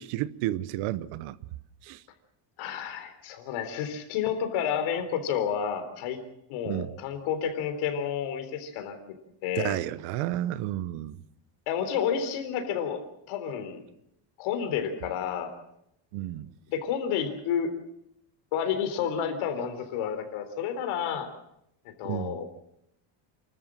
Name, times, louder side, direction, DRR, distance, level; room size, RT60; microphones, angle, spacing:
voice 1, 0.0-1.4 1.8-2.0 6.6-6.9 9.6-11.2 16.1-16.5 22.0-22.4, right 14 dB, 80° right, 1.1 m, -31 dB
voice 2, 2.6-6.2 6.5-9.0 9.4-9.8 11.7-13.8 14.4-15.5 16.7-17.7 18.5-21.3 21.9-22.5, left 8 dB, 70° left, 3.9 m, -30 dB
29.5 x 13.5 x 7.5 m
cardioid pair, 180°, 50 cm